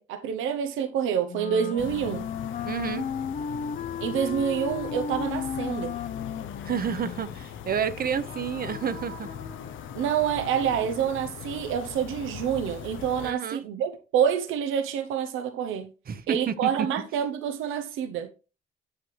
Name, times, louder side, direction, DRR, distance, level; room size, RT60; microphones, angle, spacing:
voice 1, 0.0-2.2 4.0-5.9 9.9-15.9 16.3-18.3, right 8 dB, 90° right, 0.8 m, -27 dB
Wind instrument woodwind instrument, 1.3-7.5, left 7 dB, 40° left, 0.7 m, -34 dB
sound 1, 1.8-13.3, left 9 dB, 80° left, 0.8 m, -40 dB
voice 2, 2.6-3.1 6.6-9.3 13.2-13.6 16.1-16.9, right 7 dB, 50° right, 0.8 m, -30 dB
sound 2, 7.9-11.8, left 3 dB, 55° left, 1.6 m, -46 dB
8.1 x 7.6 x 3.2 m
cardioid pair, 90°, 20 cm